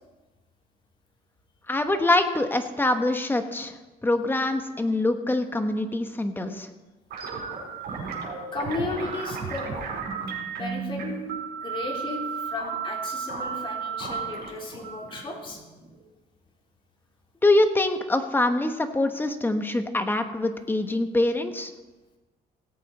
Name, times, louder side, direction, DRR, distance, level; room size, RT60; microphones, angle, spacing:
voice 1, 1.7-3.7 4.0-6.7 17.4-21.7, left 2 dB, 10° left, 7 dB, 1.1 m, -24 dB
sound 1, 7.1-16.0, right 5 dB, 70° right, 4.9 m, -34 dB
voice 2, 8.5-9.9 10.2-11.2 11.6-15.6, left 3 dB, 30° left, -1 dB, 3.2 m, -34 dB
17.5 x 8.4 x 4.1 m, 1.1 s
cardioid pair, 110°, 17 cm